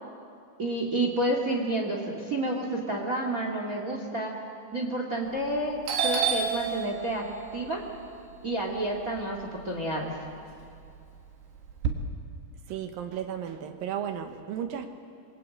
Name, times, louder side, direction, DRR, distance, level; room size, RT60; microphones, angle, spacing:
voice 1, 0.6-4.3 4.7-7.2 7.5-7.8 8.4-10.1, right 1 dB, 40° right, 2 dB, 1.1 m, -30 dB
Doorbell, 5.3-5.6 5.9-10.0 10.4-11.9, right 6 dB, 65° right, 3.5 m, -31 dB
voice 2, 12.7-14.9, right 9 dB, 80° right, 5 dB, 2.0 m, -34 dB
27.5 x 21.5 x 8.7 m, 2.5 s
omnidirectional pair, 5.9 m